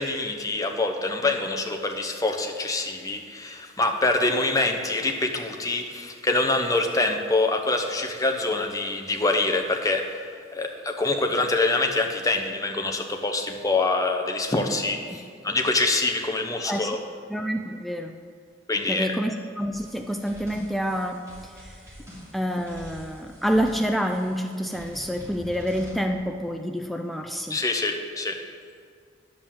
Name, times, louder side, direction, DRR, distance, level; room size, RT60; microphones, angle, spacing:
voice 1, 0.0-10.2 10.5-17.0 18.7-19.1 27.5-28.4, left 2 dB, 20° left, 4 dB, 0.8 m, -25 dB
voice 2, 17.3-18.2 18.9-21.8 22.3-27.6, equal, ahead, 5 dB, 0.3 m, -28 dB
sound 1, 19.7-25.9, equal, 15° right, 3.0 m, -45 dB
10.5 x 5.3 x 7.1 m, 2.1 s
head